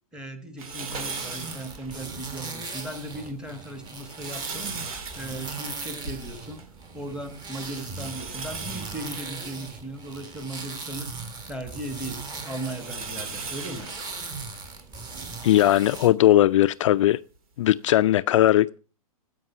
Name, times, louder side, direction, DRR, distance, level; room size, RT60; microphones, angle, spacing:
voice 1, 0.1-6.6 6.9-11.1 11.5-13.9, right 1 dB, 5° right, 1.5 m, -37 dB
sound 1, 0.6-2.4 2.9-3.0 3.8-6.8 7.1-7.2 7.7-10.7 11.3-15.2 15.9-16.0 17.4-17.5, right 4 dB, 65° right, 2.1 m, -39 dB
sound 2, 0.9-16.1, right 4 dB, 20° right, 1.8 m, -39 dB
voice 2, 15.4-17.2 17.6-18.8, left 13 dB, 55° left, 0.4 m, -19 dB
15.5 x 5.2 x 5.7 m
hypercardioid pair, 125°, 19 cm